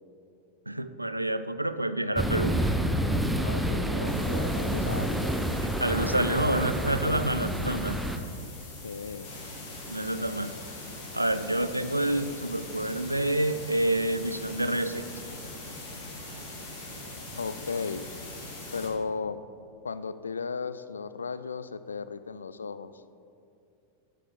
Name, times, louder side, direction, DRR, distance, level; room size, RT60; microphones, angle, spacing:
voice 1, 0.7-2.6 4.7-5.0 5.6-8.0 9.9-10.5 11.1-15.0, right 1 dB, 85° right, 11 dB, 0.3 m, -28 dB
sound 1, 2.2-8.2, right 1 dB, 5° right, 0.5 m, -28 dB
voice 2, 3.4-5.4 6.0-7.5 8.8-9.3 17.3-18.1 18.7-19.4 19.8-23.0, left 5 dB, 75° left, 13 dB, 0.3 m, -36 dB
sound 2, 4.1-18.9, left 2 dB, 40° left, 1.7 m, -42 dB
14.0 x 4.7 x 3.6 m, 2.5 s
figure-of-eight pair, 90°, 0 cm